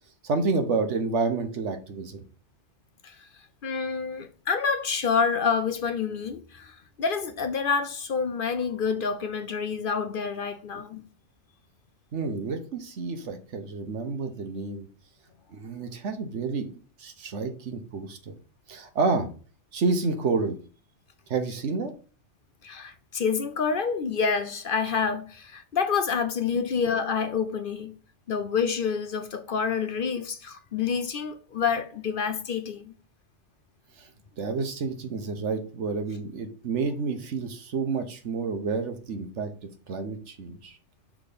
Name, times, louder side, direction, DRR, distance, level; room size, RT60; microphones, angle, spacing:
voice 1, 0.2-2.2 12.1-14.9 15.5-16.7 17.0-18.3 18.7-19.3 19.7-20.6 21.3-21.9 34.0-34.1 34.4-39.5 39.9-40.8, right 4 dB, 80° right, 1.3 m, -29 dB
voice 2, 3.6-11.0 22.6-27.9 28.3-32.9, left 6 dB, 55° left, 0.7 m, -28 dB
6.3 x 3.6 x 5.0 m
omnidirectional pair, 1.2 m